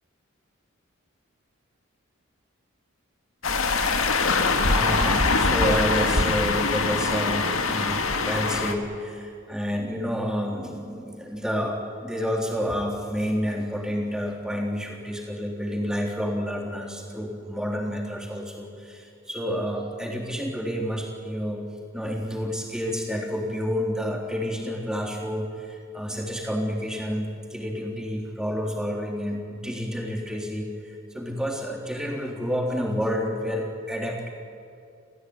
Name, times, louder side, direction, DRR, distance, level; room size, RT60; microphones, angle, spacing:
sound 1, 3.4-8.7, left 3 dB, 85° left, 2.0 m, -23 dB
voice 1, 4.0-21.7 21.9-34.3, equal, 5° right, 0 dB, 3.6 m, -29 dB
29.5 x 15.5 x 9.7 m, 2.4 s
head